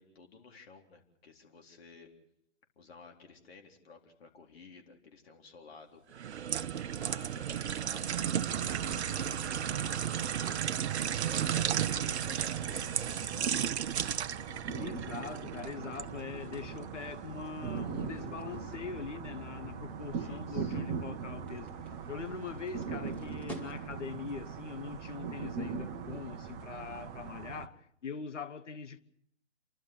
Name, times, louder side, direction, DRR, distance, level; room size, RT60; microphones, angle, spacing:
voice 1, 0.0-2.1 2.8-6.3 6.5-13.7 20.1-20.8, left 4 dB, 55° left, 4.0 m, -54 dB
sound 1, 6.1-16.1 16.5-16.7, right 9 dB, 60° right, 0.7 m, -33 dB
sound 2, 8.5-27.7, right 6 dB, 20° right, 0.9 m, -41 dB
voice 2, 14.8-21.7 22.1-29.0, left 6 dB, 75° left, 1.4 m, -42 dB
sound 3, 16.3-24.2, equal, 5° left, 1.5 m, -56 dB
29.0 x 12.0 x 8.2 m
hypercardioid pair, 140°, 36 cm